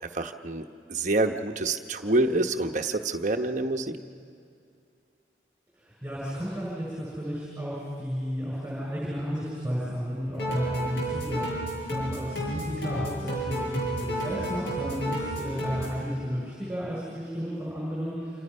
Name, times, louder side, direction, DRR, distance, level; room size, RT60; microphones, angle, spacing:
voice 1, 0.1-4.0, right 2 dB, 45° right, 5 dB, 1.0 m, -27 dB
voice 2, 5.7-11.5 11.9-18.4, equal, 10° right, -7 dB, 6.4 m, -32 dB
sound 1, 10.3-16.0, right 1 dB, 70° left, 6.7 m, -32 dB
27.5 x 27.5 x 5.5 m, 2.4 s
head